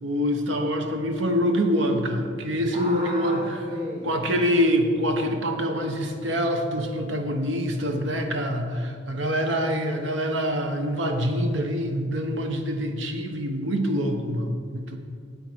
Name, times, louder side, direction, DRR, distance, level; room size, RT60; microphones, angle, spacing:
voice 1, 0.0-3.4 4.0-15.0, equal, 75° right, 4 dB, 1.1 m, -25 dB
voice 2, 2.7-4.1 4.5-4.7, equal, 30° right, -4 dB, 1.1 m, -36 dB
9.2 x 8.9 x 4.7 m, 2.2 s
head